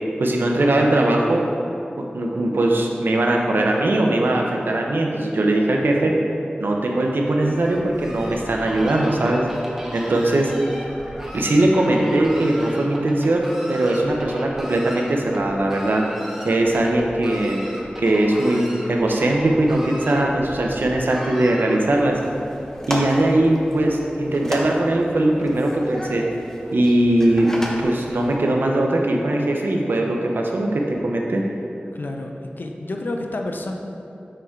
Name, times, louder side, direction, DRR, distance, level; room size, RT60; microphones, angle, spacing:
voice 1, 0.2-1.4 2.0-6.1 6.6-9.5 9.9-10.5 11.3-16.0 16.4-17.6 18.0-22.2 22.9-26.2 26.7-27.5 27.8-31.4, right 1 dB, 80° right, 0 dB, 0.7 m, -20 dB
Fowl, 7.4-22.1, equal, 10° right, 0.9 m, -37 dB
sound 1, 22.0-28.4, equal, 15° left, 0.8 m, -33 dB
voice 2, 31.9-33.7, left 2 dB, 70° left, 2 dB, 0.5 m, -29 dB
6.7 x 3.8 x 4.5 m, 2.7 s
wide cardioid pair, 65°, 3 cm